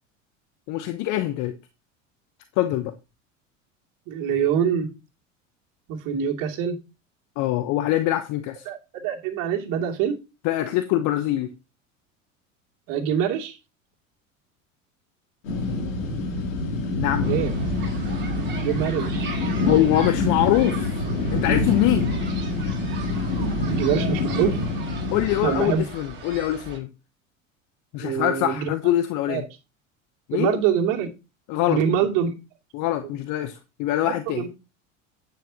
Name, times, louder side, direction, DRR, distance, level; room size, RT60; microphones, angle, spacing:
voice 1, 0.7-1.6 2.6-2.9 7.4-8.7 10.4-11.5 17.0-17.3 19.7-20.9 21.3-22.1 25.1-26.9 27.9-29.5 30.3-30.6 31.5-31.8 32.7-34.5, left 14 dB, 50° left, 1.0 m, -24 dB
voice 2, 4.1-4.9 5.9-6.8 8.7-10.2 12.9-13.6 17.3-17.5 18.6-19.3 23.7-24.6 25.4-25.8 28.0-28.7 29.3-29.4 30.3-31.1 31.7-32.3 34.3-34.5, right 8 dB, 55° right, 2.9 m, -24 dB
sound 1, 15.4-25.9, left 2 dB, 75° left, 3.1 m, -26 dB
sound 2, 17.2-26.8, right 5 dB, 30° right, 4.8 m, -38 dB
10.0 x 9.4 x 2.9 m
hypercardioid pair, 75°, 39 cm